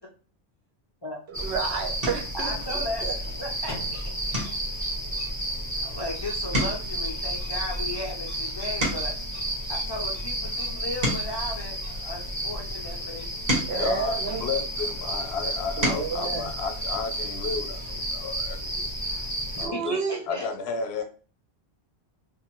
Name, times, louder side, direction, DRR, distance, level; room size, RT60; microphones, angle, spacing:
sound 1, 1.1-1.4 2.0-2.4 2.9-3.3 3.6-3.8 4.3-6.1 6.4-9.3 9.9-12.4 13.1-14.9 15.5-16.2 17.6-17.7 18.0-18.2, right 1 dB, 65° right, 1.3 m, -33 dB
sound 2, 1.3-19.7, right 1 dB, 20° right, 0.9 m, -32 dB
voice 1, 1.3-3.1 13.7-14.4 15.8-16.5 19.6-20.2, right 5 dB, 80° right, 4 dB, 0.9 m, -30 dB
voice 2, 2.3-3.0 3.4-4.0 5.8-9.1 9.7-13.9 19.6-20.5, left 1 dB, 45° left, -2 dB, 0.3 m, -36 dB
voice 3, 13.8-18.9 19.6-20.0 20.3-21.0, left 5 dB, 85° left, 6 dB, 0.8 m, -32 dB
2.6 x 2.5 x 2.9 m, 0.38 s
omnidirectional pair, 1.0 m